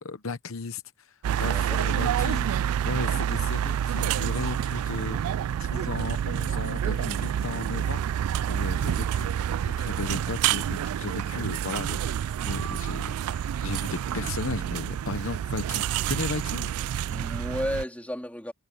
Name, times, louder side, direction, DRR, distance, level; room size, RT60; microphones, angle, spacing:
voice 1, 0.0-5.3 5.6-8.0 8.5-16.8, left 3 dB, 70° left, 0.9 m, -35 dB
sound 1, 1.2-17.8, right 9 dB, 90° right, 0.3 m, -28 dB
voice 2, 1.3-1.8 17.1-18.5, left 1 dB, 5° left, 3.5 m, -33 dB
head